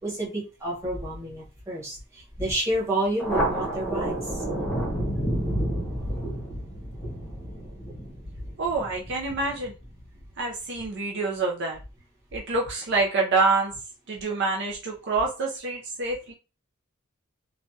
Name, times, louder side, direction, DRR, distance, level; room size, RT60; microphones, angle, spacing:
voice 1, 0.0-4.4 6.0-6.2, right 1 dB, 15° right, -6 dB, 1.5 m, -30 dB
Thunder, 3.2-10.2, right 1 dB, 5° left, 0.9 m, -30 dB
voice 2, 8.6-9.7 10.4-11.8 12.3-13.7 14.1-16.3, right 3 dB, 55° right, -1 dB, 0.6 m, -26 dB
3.2 x 2.3 x 2.7 m, 0.32 s
head